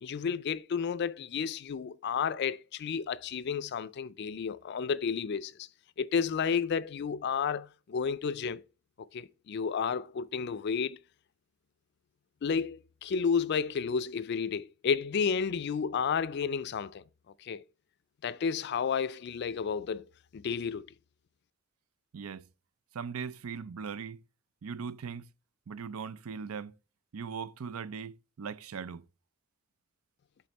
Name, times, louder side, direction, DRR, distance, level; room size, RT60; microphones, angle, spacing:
voice 1, 0.0-5.7 6.0-8.6 9.1-11.0 12.4-17.0 17.4-17.6 18.2-20.0 20.3-20.9, left 6 dB, 55° left, 0.4 m, -31 dB
voice 2, 22.1-22.5 22.9-24.2 24.6-25.3 25.7-26.7 27.1-29.0, right 6 dB, 85° right, 0.5 m, -39 dB
7.6 x 4.1 x 4.1 m
head